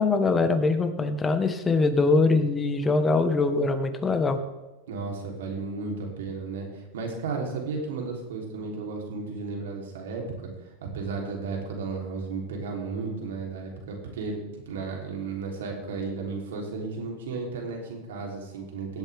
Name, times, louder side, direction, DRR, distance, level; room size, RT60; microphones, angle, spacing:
voice 1, 0.0-4.4, left 3 dB, 20° left, 8 dB, 1.3 m, -23 dB
voice 2, 4.9-19.0, right 4 dB, 85° right, 0 dB, 3.3 m, -34 dB
18.0 x 8.1 x 3.5 m, 1.1 s
supercardioid pair, 125°, 0 cm